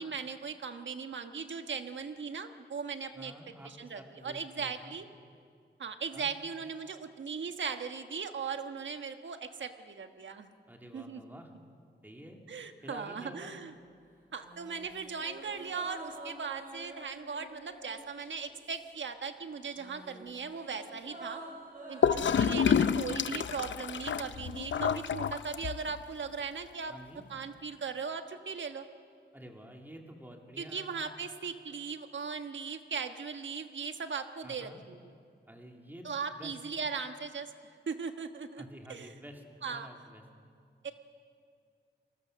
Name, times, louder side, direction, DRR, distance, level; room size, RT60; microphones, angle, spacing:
voice 1, 0.0-3.3 3.6-5.1 5.8-10.5 10.9-11.2 12.5-13.7 14.3-21.4 21.9-26.9 27.3-28.9 30.6-35.0 36.0-37.5 37.9-38.6 38.9-39.1 39.6-39.9 40.8-40.9, right 5 dB, 80° right, 7 dB, 1.4 m, -38 dB
voice 2, 3.1-4.9 6.1-6.3 10.6-11.5 12.0-12.4 12.8-13.5 26.9-27.3 29.3-30.9 34.4-34.8 35.5-36.1 36.4-36.6 38.6-40.2, equal, 10° right, 2 dB, 2.5 m, -49 dB
sound 1, 14.4-19.2 19.4-23.8 24.0-24.1, right 1 dB, 45° right, 6.0 m, -49 dB
Gurgling / Toilet flush, 22.0-26.0, left 7 dB, 80° left, 0.7 m, -28 dB
28.5 x 21.5 x 6.5 m, 2.3 s
wide cardioid pair, 155°, 19 cm